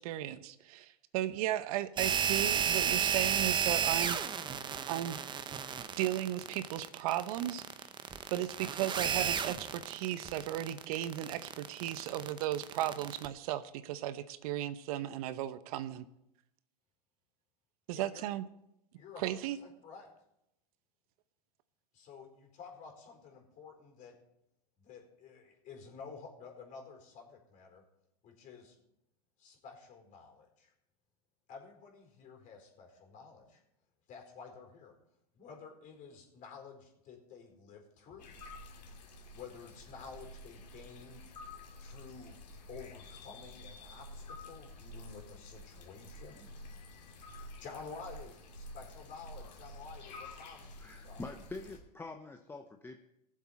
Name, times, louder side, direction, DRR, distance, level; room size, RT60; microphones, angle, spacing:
voice 1, 0.0-4.5 4.9-5.2 5.9-7.6 8.3-16.1 17.9-18.4 19.2-19.6, right 13 dB, 60° right, 13 dB, 0.8 m, -35 dB
sound 1, 2.0-13.3, right 8 dB, 20° right, 0.8 m, -33 dB
voice 2, 18.9-20.1 21.9-24.2 24.8-27.8 28.2-28.7 29.4-30.7 31.5-33.6 34.1-35.0 35.3-38.3 39.3-41.3 41.8-42.4 42.7-46.5 47.0-51.3, left 5 dB, 40° left, 2 dB, 4.5 m, -51 dB
sound 2, 38.2-51.8, left 1 dB, 85° left, 2.7 m, -50 dB
voice 3, 50.8-53.0, left 3 dB, 10° left, 4 dB, 0.8 m, -45 dB
19.5 x 7.5 x 4.3 m, 0.82 s
hypercardioid pair, 110°, 21 cm